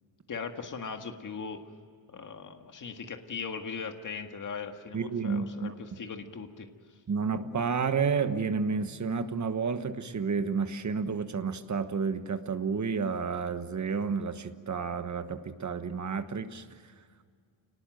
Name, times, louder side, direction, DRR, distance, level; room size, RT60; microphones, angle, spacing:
voice 1, 0.3-1.6 2.1-6.7, left 5 dB, 45° left, 5 dB, 1.8 m, -39 dB
voice 2, 4.9-5.7 7.1-16.6, right 5 dB, 40° right, 9 dB, 1.3 m, -30 dB
29.5 x 19.0 x 9.2 m, 2.1 s
wide cardioid pair, 170°, 45 cm